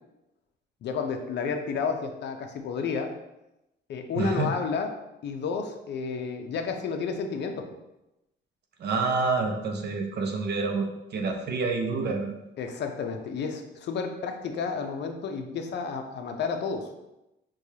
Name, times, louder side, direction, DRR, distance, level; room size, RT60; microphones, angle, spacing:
voice 1, 0.8-3.1 3.9-4.9 5.2-7.7 12.6-16.9, left 5 dB, 60° left, 5 dB, 0.5 m, -31 dB
voice 2, 4.1-4.5 8.8-12.3, right 4 dB, 55° right, 4 dB, 0.6 m, -28 dB
4.6 x 2.3 x 2.8 m, 0.93 s
cardioid pair, 90°, 20 cm